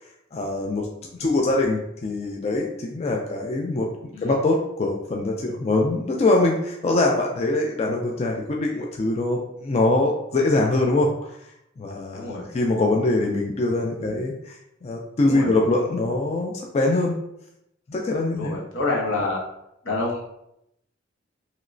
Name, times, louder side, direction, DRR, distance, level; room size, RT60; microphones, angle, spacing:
voice 1, 0.3-0.9 1.2-11.4 11.8-17.2 17.9-18.6, left 2 dB, 35° left, 0 dB, 0.3 m, -23 dB
voice 2, 12.2-12.5 14.0-14.1 15.2-15.5 18.4-19.4 19.8-20.2, left 2 dB, 85° left, -2 dB, 0.9 m, -27 dB
3.0 x 2.9 x 2.5 m, 0.80 s
head